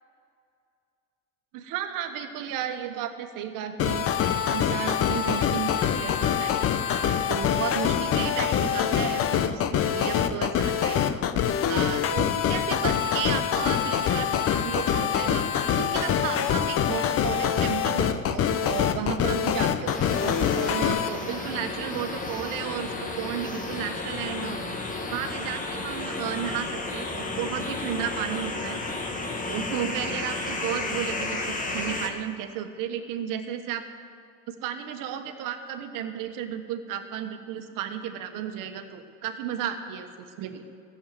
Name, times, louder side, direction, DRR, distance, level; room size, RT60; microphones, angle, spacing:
voice 1, 1.5-6.7 7.3-11.0 11.7-15.5 15.7-24.6 25.1-28.8 29.5-33.9 34.5-40.6, right 9 dB, 65° right, 7 dB, 1.3 m, -33 dB
sound 1, 3.8-21.1, left 8 dB, 40° left, 0.7 m, -25 dB
sound 2, 19.9-32.1, left 2 dB, 20° left, 1.5 m, -32 dB
14.0 x 7.4 x 9.2 m, 2.4 s
supercardioid pair, 120°, 36 cm